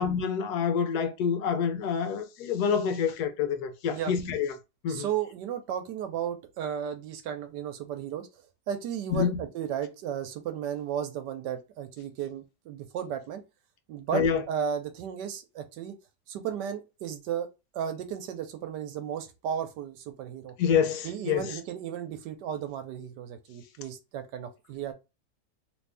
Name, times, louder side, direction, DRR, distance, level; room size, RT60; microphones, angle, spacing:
voice 1, 0.0-4.6 4.8-5.1 9.1-9.4 14.1-14.4 20.6-21.4, left 7 dB, 75° left, 1.2 m, -27 dB
voice 2, 4.9-8.3 8.7-13.4 13.9-15.9 16.3-17.5 17.7-20.5 21.0-24.9, right 9 dB, 90° right, 1.3 m, -34 dB
3.0 x 2.6 x 3.3 m
omnidirectional pair, 1.8 m